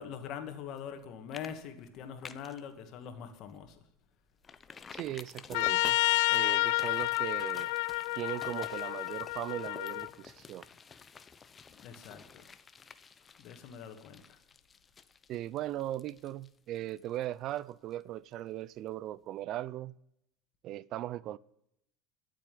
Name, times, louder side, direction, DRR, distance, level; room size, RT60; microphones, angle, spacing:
voice 1, 0.0-3.7 11.8-12.4 13.4-14.2, left 8 dB, 60° left, 2.2 m, -43 dB
sound 1, 0.8-1.0 1.3-1.5 1.8-2.6 3.0-3.1 3.5-3.6 4.4-18.0 18.3-18.4, left 5 dB, 30° left, 1.0 m, -51 dB
voice 2, 4.9-6.0 6.3-7.7 8.2-10.7 15.3-19.9 20.6-21.4, right 13 dB, 55° right, 0.5 m, -38 dB
Trumpet, 5.5-10.1, left 20 dB, 75° left, 0.4 m, -30 dB
12.5 x 7.7 x 9.5 m
supercardioid pair, 100°, 0 cm